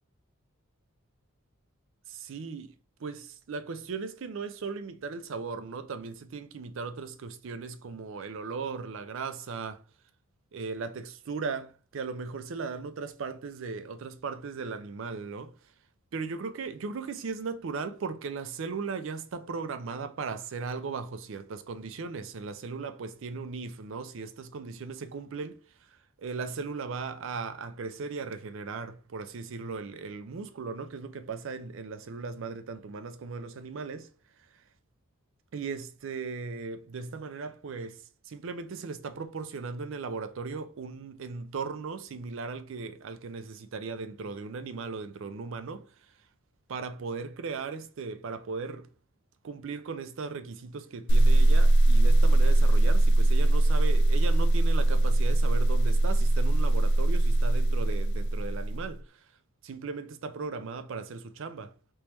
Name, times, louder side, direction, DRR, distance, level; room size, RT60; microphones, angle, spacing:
voice 1, 2.1-2.7 3.0-9.8 10.5-15.7 16.1-34.1 34.4-34.7 35.5-46.3 46.7-48.9 49.4-61.7, right 4 dB, 60° right, 0.4 m, -37 dB
sound 1, 51.1-58.9, right 1 dB, 55° left, 0.3 m, -21 dB
3.4 x 3.0 x 2.9 m
head